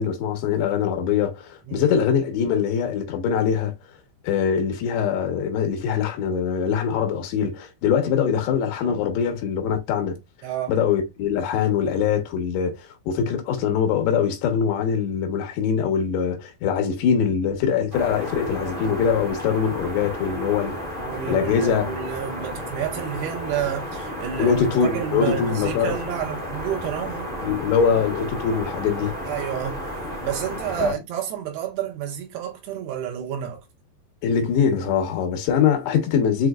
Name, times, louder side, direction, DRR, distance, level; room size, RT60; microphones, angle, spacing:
voice 1, 0.0-3.7 4.2-10.2 10.7-12.8 13.1-20.8 21.3-21.9 24.4-25.9 27.4-29.1 30.8-30.9 34.2-36.5, left 7 dB, 80° left, 3.3 m, -23 dB
voice 2, 10.4-10.8 21.0-27.3 29.3-29.9 30.2-33.6, right 10 dB, 75° right, 3.4 m, -30 dB
sound 1, 17.9-30.9, equal, 45° right, 0.6 m, -33 dB
7.7 x 2.8 x 2.4 m
omnidirectional pair, 4.9 m